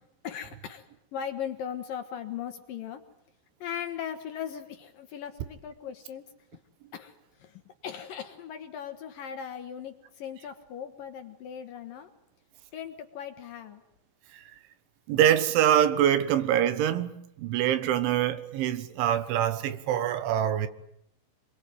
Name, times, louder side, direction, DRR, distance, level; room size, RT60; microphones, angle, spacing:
voice 1, 0.2-0.8 1.1-3.0 3.6-6.3 6.9-7.1 7.4-12.1 12.7-13.8, left 8 dB, 65° left, 2.6 m, -38 dB
voice 2, 15.1-17.1 17.4-20.7, right 10 dB, 85° right, 3.9 m, -24 dB
27.5 x 22.5 x 9.4 m
omnidirectional pair, 5.3 m